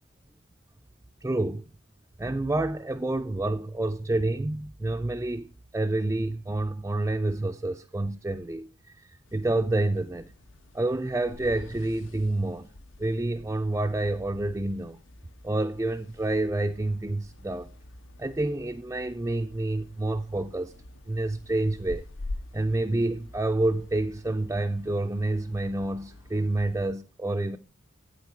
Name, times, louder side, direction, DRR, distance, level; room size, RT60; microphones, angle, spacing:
voice 1, 1.2-1.7 2.2-8.7 8.9-10.3 10.7-12.7 13.0-15.0 15.4-17.7 18.2-20.7 21.1-22.0 22.5-27.6, right 2 dB, 15° right, 0.4 m, -28 dB
sound 1, 9.2-26.9, left 2 dB, 70° left, 0.6 m, -46 dB
8.9 x 8.1 x 4.4 m
head